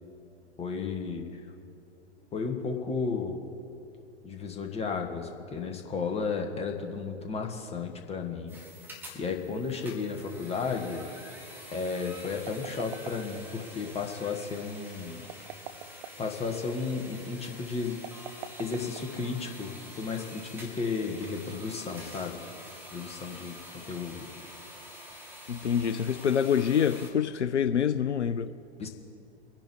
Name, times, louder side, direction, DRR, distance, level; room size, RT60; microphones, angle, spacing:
voice 1, 0.6-1.4 2.3-3.4 4.2-8.6 9.1-11.0 11.7-15.2 16.2-18.0 18.6-22.4 22.9-23.6 23.9-24.3 28.8-28.9, left 4 dB, 20° left, 3 dB, 1.4 m, -33 dB
sound 1, 8.5-27.1, equal, 5° right, 2.3 m, -47 dB
sound 2, 12.2-13.7 15.2-16.3 18.0-19.5, right 9 dB, 45° right, 0.8 m, -43 dB
voice 2, 25.5-28.5, left 8 dB, 85° left, 12 dB, 0.5 m, -26 dB
23.5 x 10.5 x 3.2 m, 2.6 s
figure-of-eight pair, 95°, 34 cm